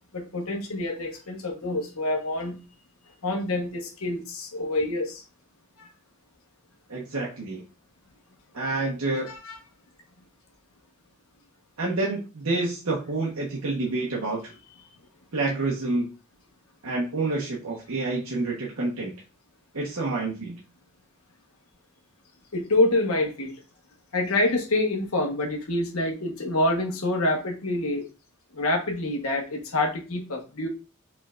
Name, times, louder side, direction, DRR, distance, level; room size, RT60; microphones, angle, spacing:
voice 1, 0.1-2.6 3.2-5.2 5.8-5.9 9.1-9.6 22.5-23.6 24.1-28.0 28.5-30.7, left 2 dB, 80° left, 1.2 m, -27 dB
voice 2, 6.9-7.6 8.5-9.3 11.8-14.5 15.3-16.1 16.8-19.1 19.7-20.6, right 2 dB, 75° right, 1.1 m, -28 dB
4.9 x 3.6 x 2.5 m
head